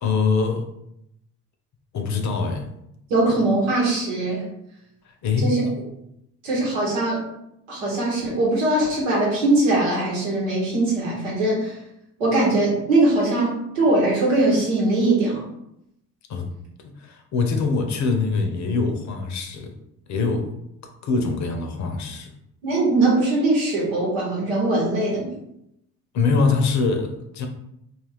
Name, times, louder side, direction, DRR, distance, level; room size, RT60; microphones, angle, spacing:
voice 1, 0.0-0.7 1.9-2.7 5.2-5.6 16.3-16.5 16.8-19.7 20.1-20.5 21.0-22.3 26.1-27.5, left 4 dB, 50° left, 5 dB, 0.6 m, -23 dB
voice 2, 3.1-4.5 5.4-5.6 6.4-7.2 7.7-11.7 12.2-15.4 22.6-25.3, right 2 dB, 90° right, -4 dB, 1.1 m, -21 dB
2.4 x 2.3 x 3.4 m, 0.80 s
hypercardioid pair, 60°, 37 cm